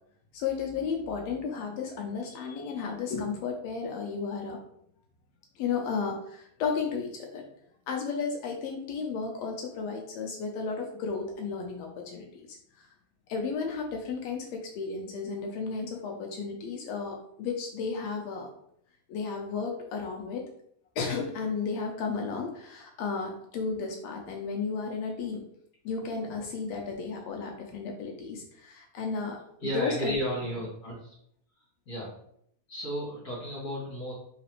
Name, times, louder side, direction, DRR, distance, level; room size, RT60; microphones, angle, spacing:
voice 1, 0.3-4.6 5.6-7.4 7.9-12.5 12.7-12.9 13.3-18.5 19.1-20.4 21.0-25.4 25.8-30.1, left 5 dB, 80° left, 1 dB, 1.5 m, -33 dB
voice 2, 29.6-31.1 31.9-32.1 32.7-34.1, equal, 40° left, -7 dB, 1.8 m, -33 dB
4.0 x 3.9 x 3.0 m, 0.69 s
omnidirectional pair, 3.6 m